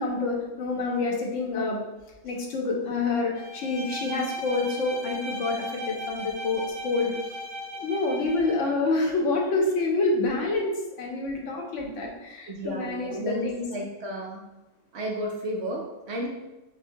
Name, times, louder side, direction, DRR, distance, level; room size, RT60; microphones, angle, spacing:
voice 1, 0.0-1.8 2.2-7.1 7.7-13.6 16.2-16.3, left 3 dB, 70° left, -1 dB, 1.1 m, -27 dB
Bowed string instrument, 3.3-8.7, left 1 dB, 90° right, 1.1 m, -37 dB
voice 2, 12.5-14.4 14.9-16.3, equal, 65° right, 0 dB, 0.8 m, -32 dB
6.2 x 2.1 x 2.6 m, 1.0 s
omnidirectional pair, 1.4 m